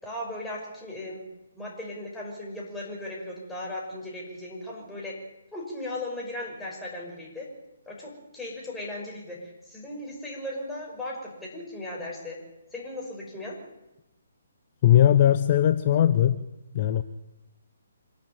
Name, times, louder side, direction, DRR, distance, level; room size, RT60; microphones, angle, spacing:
voice 1, 0.0-1.2 1.5-5.2 5.5-7.5 7.9-12.4 12.7-13.6, left 1 dB, 5° left, -3 dB, 5.9 m, -37 dB
voice 2, 14.8-16.4 16.7-17.0, left 11 dB, 40° left, 11 dB, 0.8 m, -19 dB
25.5 x 11.5 x 9.1 m, 0.97 s
figure-of-eight pair, 135°, 0 cm